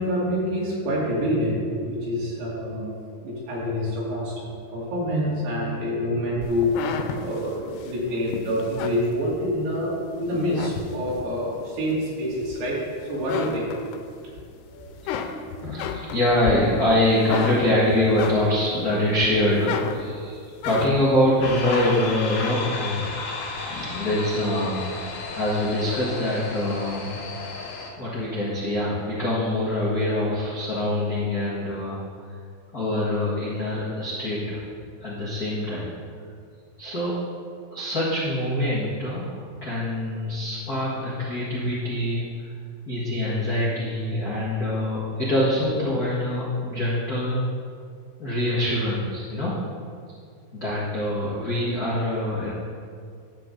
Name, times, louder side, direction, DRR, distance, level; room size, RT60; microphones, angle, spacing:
voice 1, 0.0-2.9 3.2-6.7 7.2-9.9 10.2-12.8 13.1-13.7 14.7-14.8, equal, 75° right, -6 dB, 4.7 m, -26 dB
sound 1, 6.4-9.8 10.3-11.4 11.9-12.9 13.2-14.4 14.8-18.8 19.2-21.2, left 7 dB, 85° left, 2.8 m, -33 dB
voice 2, 15.6-23.0 23.6-27.2 28.0-32.0 32.7-34.7 35.0-35.9 36.8-37.1 37.7-42.2 42.9-47.4 48.2-49.6 50.6-52.5, left 1 dB, 50° left, -8 dB, 1.1 m, -24 dB
sound 2, 21.4-27.9, left 3 dB, 70° left, 3.0 m, -33 dB
12.0 x 8.2 x 3.9 m, 2.2 s
omnidirectional pair, 4.6 m